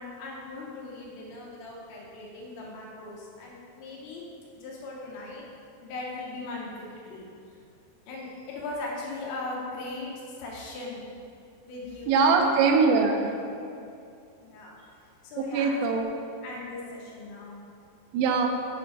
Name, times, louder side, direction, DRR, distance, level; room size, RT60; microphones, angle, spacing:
voice 1, 0.0-4.2 4.6-5.5 5.8-6.7 7.1-7.6 8.1-11.0 11.6-12.5 14.4-14.8 15.2-16.1 16.4-17.6, left 2 dB, 75° left, -3 dB, 3.0 m, -39 dB
voice 2, 12.1-13.3 15.5-16.1 18.1-18.5, right 4 dB, 90° right, 2 dB, 3.4 m, -22 dB
7.7 x 4.3 x 5.1 m, 2.6 s
omnidirectional pair, 5.8 m